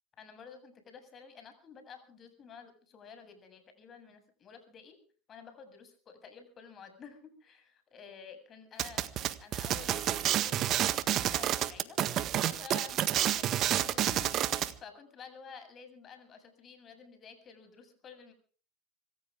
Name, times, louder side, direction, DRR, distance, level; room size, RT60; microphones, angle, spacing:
voice 1, 0.2-5.0 5.3-9.1 9.4-12.0 12.4-18.3, left 6 dB, 35° left, 7 dB, 7.6 m, -51 dB
sound 1, 8.8-14.7, right 12 dB, 45° right, 1.7 m, -29 dB
26.0 x 15.0 x 3.7 m, 0.42 s
hypercardioid pair, 100°, 0 cm